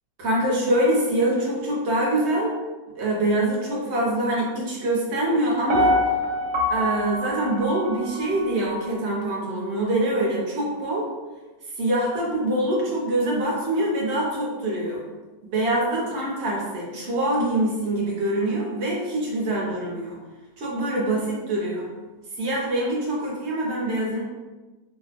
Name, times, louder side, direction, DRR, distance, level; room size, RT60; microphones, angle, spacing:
voice 1, 0.2-2.5 2.9-6.0 6.7-11.1 11.8-15.0 15.4-20.2 20.6-21.9 22.4-24.2, right 1 dB, 55° right, -3 dB, 0.9 m, -24 dB
Piano, 5.7-8.8 9.2-9.3, left 1 dB, 85° right, 1.1 m, -25 dB
2.9 x 2.0 x 4.1 m, 1.2 s
omnidirectional pair, 1.6 m